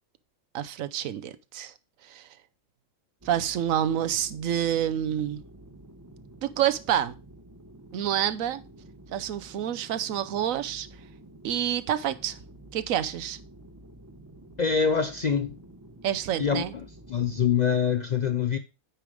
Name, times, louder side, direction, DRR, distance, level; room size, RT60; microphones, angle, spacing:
voice 1, 0.5-1.7 2.1-2.3 3.2-5.4 6.4-7.1 7.9-8.6 9.1-10.9 11.4-12.4 12.7-13.4 16.0-16.7, right 10 dB, 90° right, 1.1 m, -28 dB
sound 1, 3.2-17.5, right 1 dB, 15° right, 0.8 m, -50 dB
voice 2, 14.6-15.6 16.4-18.6, left 7 dB, 55° left, 0.4 m, -25 dB
9.0 x 5.1 x 4.8 m
omnidirectional pair, 1.4 m